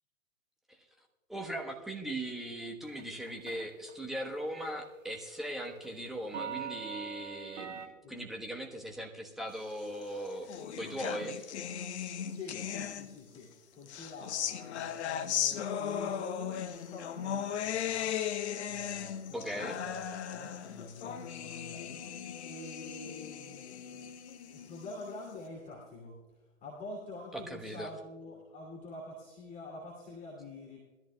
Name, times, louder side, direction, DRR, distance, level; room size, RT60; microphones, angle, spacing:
voice 1, 1.3-11.5 19.3-19.8 27.3-27.9, right 1 dB, ahead, 1 dB, 1.1 m, -39 dB
sound 1, 3.0-4.0 4.2-4.6 4.8-7.9, right 8 dB, 60° right, 1.6 m, -42 dB
sound 2, 9.9-13.4 13.9-25.3, left 9 dB, 50° left, 1.0 m, -37 dB
voice 2, 12.3-22.0 22.4-26.2 26.6-30.8, left 2 dB, 20° left, -4 dB, 2.6 m, -47 dB
21.5 x 13.5 x 2.3 m, 1.2 s
figure-of-eight pair, 120°, 41 cm